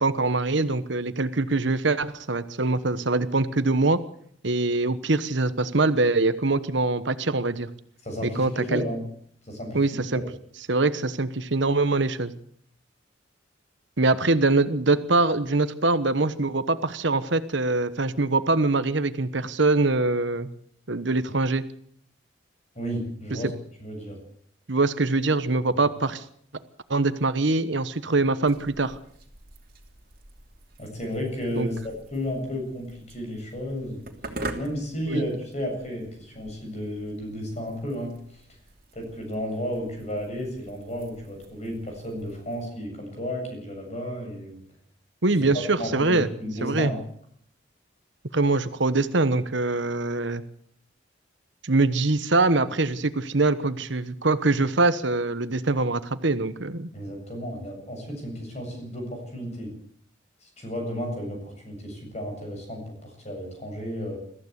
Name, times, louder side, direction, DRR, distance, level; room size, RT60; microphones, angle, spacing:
voice 1, 0.0-4.0 4.4-7.7 8.2-8.8 9.7-10.2 10.7-12.3 14.0-20.5 20.9-21.6 23.3-23.4 24.7-26.2 26.9-29.0 31.6-31.7 35.1-35.2 45.2-46.3 46.6-46.9 48.3-50.4 51.6-56.9, right 3 dB, 70° right, 13 dB, 1.2 m, -23 dB
voice 2, 8.0-9.0 9.5-9.8 10.1-10.2 22.7-23.5 23.8-24.2 30.8-34.0 34.5-38.2 38.9-44.5 45.5-47.0 56.9-59.7 60.4-64.2, equal, 35° left, 2 dB, 7.7 m, -33 dB
sound 1, 28.4-42.7, right 2 dB, 45° right, 3.0 m, -44 dB
22.5 x 14.5 x 8.2 m, 0.64 s
head